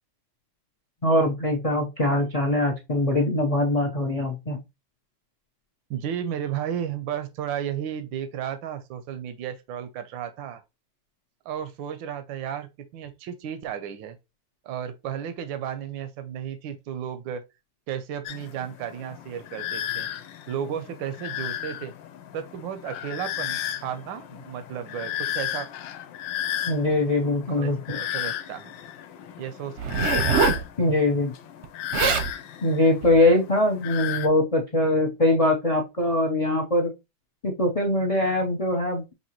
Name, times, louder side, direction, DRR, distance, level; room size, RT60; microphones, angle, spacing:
voice 1, 1.0-4.6 26.7-28.0 30.8-31.3 32.6-36.9 37.4-39.1, left 2 dB, 65° left, 0.3 m, -22 dB
voice 2, 5.9-10.6 11.4-12.7 12.9-14.2 14.6-17.4 17.9-20.1 20.5-21.9 22.3-25.7 27.5-28.7 29.4-29.7, right 9 dB, 85° right, 1.4 m, -33 dB
sound 1, 18.3-34.3, left 11 dB, 80° left, 1.3 m, -34 dB
Zipper (clothing), 29.8-30.6 31.6-31.7 31.9-32.3 33.0-33.2, right 6 dB, 55° right, 0.7 m, -23 dB
5.8 x 2.8 x 2.9 m
omnidirectional pair, 2.0 m